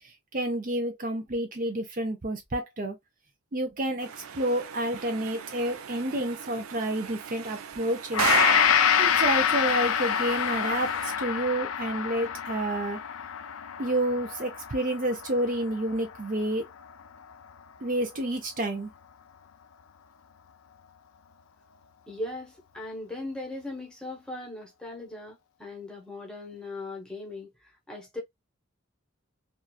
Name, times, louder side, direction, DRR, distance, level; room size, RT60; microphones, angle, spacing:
voice 1, 0.3-2.9 3.5-8.3 9.0-13.0 13.8-16.7 17.8-18.9, right 1 dB, 40° right, 0.6 m, -29 dB
sound 1, 4.0-11.1, right 7 dB, 90° right, 0.4 m, -35 dB
Gong, 8.1-16.4 16.9-17.1, left 8 dB, 85° left, 0.5 m, -27 dB
voice 2, 22.1-28.2, left 2 dB, 5° left, 0.8 m, -39 dB
2.9 x 2.4 x 2.3 m
head